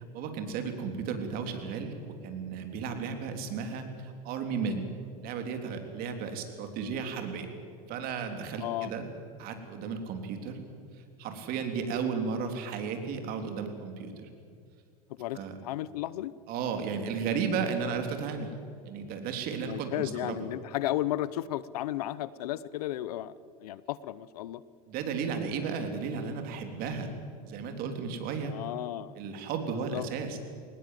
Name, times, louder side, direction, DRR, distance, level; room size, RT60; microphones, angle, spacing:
voice 1, 0.0-4.9 5.2-7.5 7.9-9.1 9.4-10.6 11.2-14.3 15.3-15.6 16.5-18.5 18.9-20.5 24.9-27.1 27.5-28.5 29.2-30.4, right 5 dB, 50° right, 6 dB, 3.5 m, -34 dB
voice 2, 15.2-16.3 19.6-23.3 23.6-24.6 28.4-29.1 29.7-30.1, left 14 dB, 90° left, 19 dB, 0.8 m, -34 dB
23.0 x 19.5 x 7.7 m, 2.3 s
supercardioid pair, 125°, 19 cm